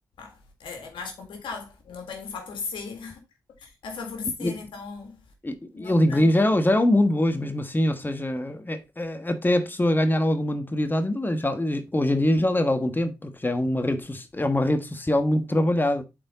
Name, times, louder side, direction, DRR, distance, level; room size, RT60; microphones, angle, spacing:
voice 1, 0.2-3.2 3.6-5.2 5.7-6.5, left 5 dB, 90° left, 1.8 m, -37 dB
voice 2, 5.4-16.0, left 1 dB, 25° left, 1.2 m, -23 dB
7.7 x 4.4 x 4.0 m
supercardioid pair, 40°, 8 cm